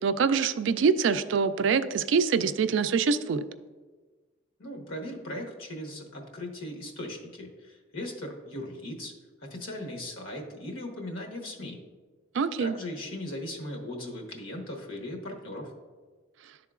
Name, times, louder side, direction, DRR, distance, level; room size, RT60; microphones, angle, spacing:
voice 1, 0.0-3.4 12.3-12.8, right 5 dB, 70° right, 11 dB, 0.3 m, -25 dB
voice 2, 4.6-9.1 9.4-11.8 12.6-15.7, left 1 dB, 85° left, 2 dB, 1.1 m, -38 dB
11.0 x 3.7 x 2.4 m, 1.4 s
head